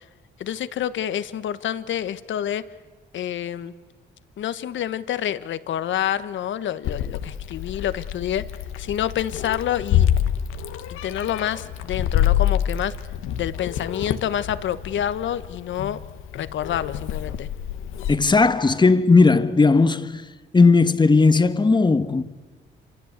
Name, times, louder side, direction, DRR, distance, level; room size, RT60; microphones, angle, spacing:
voice 1, 0.4-2.6 3.1-3.7 4.4-8.5 8.8-10.1 10.9-12.9 13.4-16.0 16.3-17.5, left 10 dB, 70° left, 1.4 m, -28 dB
Meow, 6.8-18.1, left 10 dB, 90° left, 1.6 m, -26 dB
voice 2, 18.1-20.2 20.5-22.2, left 3 dB, 20° left, 1.5 m, -16 dB
27.5 x 26.0 x 8.2 m
cardioid pair, 90°, 20 cm